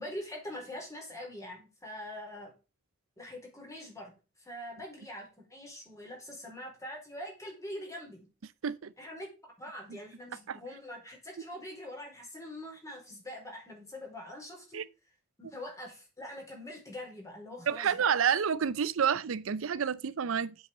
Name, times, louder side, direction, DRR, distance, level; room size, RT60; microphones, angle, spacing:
voice 1, 0.0-2.5 3.2-8.3 9.0-9.3 9.6-14.8 15.4-18.1, left 1 dB, 15° left, 4.5 m, -44 dB
voice 2, 17.7-20.5, right 7 dB, 70° right, 0.5 m, -29 dB
8.0 x 6.3 x 7.3 m
head